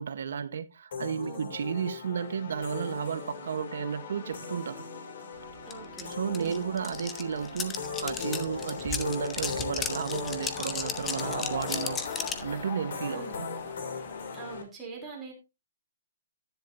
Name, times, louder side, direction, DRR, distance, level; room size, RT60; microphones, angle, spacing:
voice 1, 0.0-4.9 6.1-12.0 12.4-13.4, right 7 dB, 65° right, 0.9 m, -33 dB
sound 1, 0.9-14.6, left 5 dB, 60° left, 2.6 m, -39 dB
voice 2, 5.6-6.1 6.3-6.6 13.1-13.4 14.3-15.3, right 4 dB, 10° right, 3.1 m, -43 dB
sound 2, 5.7-5.8 6.0-12.5, left 6 dB, 10° left, 0.7 m, -35 dB
sound 3, 8.5-14.6, left 5 dB, 35° left, 2.1 m, -43 dB
10.5 x 10.5 x 2.6 m
hypercardioid pair, 175°, 0 cm